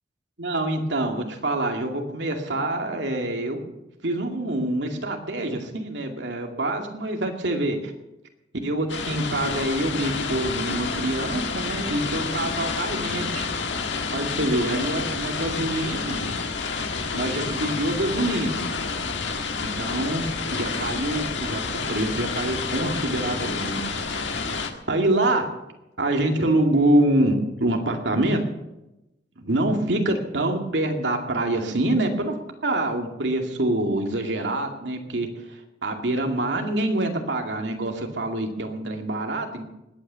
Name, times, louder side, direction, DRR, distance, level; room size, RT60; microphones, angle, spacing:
voice 1, 0.4-3.6 4.0-7.9 8.6-13.5 14.1-16.2 17.1-18.6 19.8-21.6 21.9-23.8 24.9-25.5 26.0-28.4 29.4-32.3 32.6-39.6, right 1 dB, 80° right, 3 dB, 2.3 m, -25 dB
sound 1, 8.9-24.7, left 4 dB, 85° left, 1.7 m, -29 dB
20.0 x 9.1 x 6.9 m, 0.96 s
head